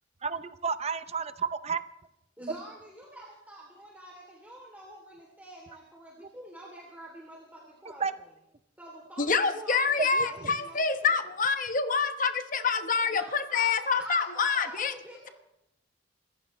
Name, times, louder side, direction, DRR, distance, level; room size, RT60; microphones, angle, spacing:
voice 1, 0.2-1.8 8.0-8.1 10.0-10.5, right 5 dB, 35° right, 12 dB, 0.7 m, -31 dB
voice 2, 2.4-8.2 8.8-11.2 12.9-15.3, right 1 dB, 10° right, -3 dB, 3.1 m, -46 dB
voice 3, 9.2-14.9, left 5 dB, 45° left, 9 dB, 1.2 m, -27 dB
27.5 x 15.0 x 3.2 m, 0.84 s
head